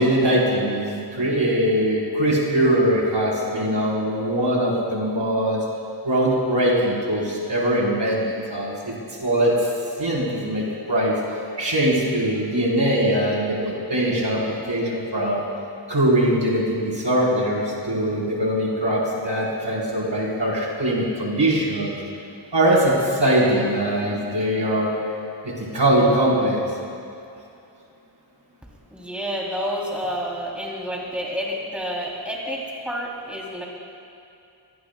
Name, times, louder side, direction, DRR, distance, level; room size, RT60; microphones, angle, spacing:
voice 1, 0.0-5.6 6.0-8.9 9.2-9.7 10.0-11.2 11.6-15.4 15.9-22.0 22.5-25.0 25.4-26.6, right 1 dB, 70° right, -5 dB, 4.2 m, -21 dB
voice 2, 28.9-33.6, equal, 5° right, -3 dB, 3.0 m, -29 dB
27.5 x 18.5 x 2.3 m, 2.6 s
wide cardioid pair, 50°, 45 cm